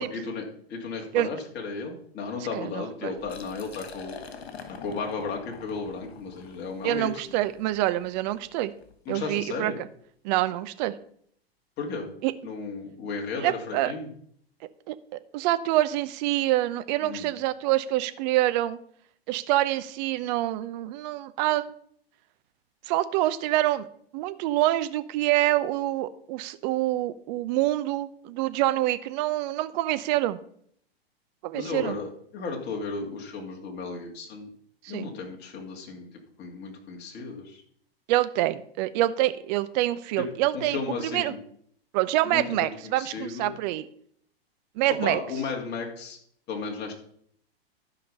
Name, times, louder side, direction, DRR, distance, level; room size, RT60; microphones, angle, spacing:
voice 1, 0.0-4.2 4.8-7.2 9.1-9.8 11.8-12.1 12.4-14.1 17.0-17.3 31.5-34.5 34.9-36.0 36.4-37.6 40.2-40.3 40.5-41.4 42.2-42.7 43.0-43.5 45.0-46.2 46.5-46.9, left 4 dB, 35° left, 1 dB, 2.4 m, -34 dB
voice 2, 2.5-3.1 6.8-8.7 9.1-9.7 10.2-11.0 12.2-12.3 13.4-13.9 14.9-18.8 19.3-21.7 22.9-23.9 24.1-30.4 31.4-32.0 34.8-35.1 38.1-40.8 41.1-41.3 41.9-43.8 44.8-45.2, right 15 dB, 45° right, 13 dB, 0.8 m, -26 dB
Liquid, 3.2-8.9, left 5 dB, 75° left, 1.9 m, -46 dB
12.5 x 5.3 x 5.5 m, 0.64 s
hypercardioid pair, 110°, 31 cm